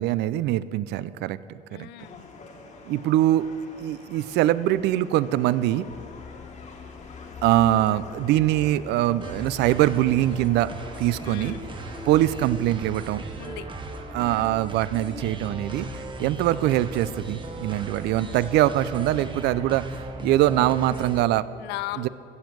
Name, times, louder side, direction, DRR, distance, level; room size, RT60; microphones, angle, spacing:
voice 1, 0.0-1.9 2.9-3.5 3.8-5.9 7.4-10.7 11.0-11.6 12.1-13.2 14.1-20.0 20.2-21.5 22.0-22.1, right 14 dB, 80° right, 17 dB, 0.4 m, -23 dB
voice 2, 1.7-2.3 11.2-11.7 13.4-13.7 14.1-14.5 21.6-22.1, left 16 dB, 85° left, 15 dB, 0.5 m, -37 dB
sound 1, 2.0-12.4, left 3 dB, 45° left, 1.5 m, -46 dB
sound 2, 5.8-19.6, left 6 dB, 25° left, 0.4 m, -47 dB
sound 3, 9.2-21.2, right 2 dB, 30° right, 1.0 m, -37 dB
15.0 x 5.2 x 7.5 m, 2.7 s
cardioid pair, 110°, 17 cm